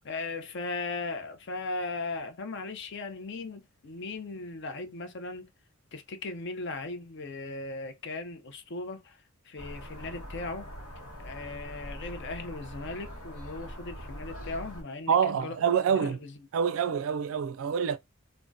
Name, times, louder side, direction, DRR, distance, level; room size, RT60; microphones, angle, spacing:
voice 1, 0.0-5.5 5.9-10.7 11.2-15.5 15.9-16.3, left 3 dB, 55° left, 0.5 m, -38 dB
sound 1, 9.6-14.8, equal, 85° left, 0.9 m, -43 dB
voice 2, 15.1-16.2 16.5-18.0, right 7 dB, 70° right, 0.3 m, -26 dB
3.4 x 2.1 x 2.6 m
head